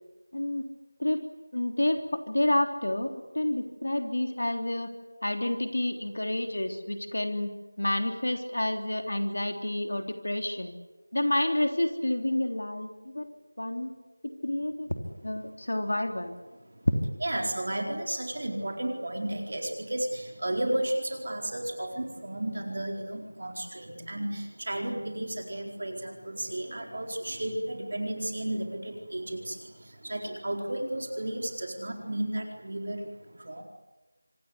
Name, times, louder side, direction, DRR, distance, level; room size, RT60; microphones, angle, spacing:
voice 1, 0.3-0.7 1.0-1.3 1.5-4.9 5.2-7.5 7.8-10.7 11.1-13.3 13.6-13.9 14.4-16.3 16.8-16.9, left 1 dB, 60° left, 5 dB, 3.3 m, -29 dB
voice 2, 16.5-16.9 17.2-33.6, right 1 dB, 40° right, 2 dB, 4.4 m, -33 dB
26.0 x 18.5 x 9.9 m, 1.1 s
figure-of-eight pair, 180°, 0 cm